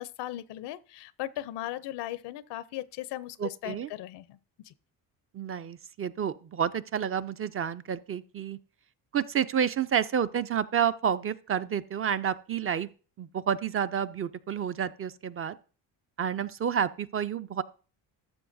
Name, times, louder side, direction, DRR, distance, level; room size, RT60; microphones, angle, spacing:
voice 1, 0.0-4.4 4.6-4.7, left 14 dB, 80° left, 0.6 m, -37 dB
voice 2, 3.4-3.9 5.3-8.6 9.1-12.9 13.2-15.6 16.2-17.6, right 8 dB, 35° right, 0.4 m, -29 dB
12.5 x 6.9 x 2.6 m
cardioid pair, 90°, 40 cm